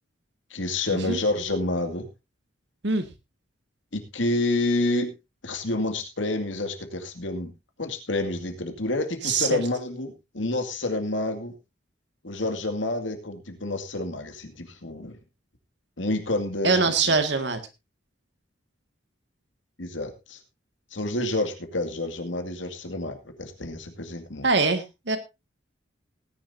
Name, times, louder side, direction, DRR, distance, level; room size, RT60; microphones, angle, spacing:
voice 1, 0.5-2.1 3.9-5.1 5.4-7.5 7.8-11.5 12.2-15.2 16.0-17.2 19.8-20.4 20.9-24.5, left 2 dB, 75° left, 6 dB, 2.3 m, -29 dB
voice 2, 9.2-9.6 16.6-17.6 24.4-25.2, right 4 dB, 60° right, 8 dB, 1.9 m, -23 dB
19.0 x 10.5 x 2.7 m, 0.24 s
head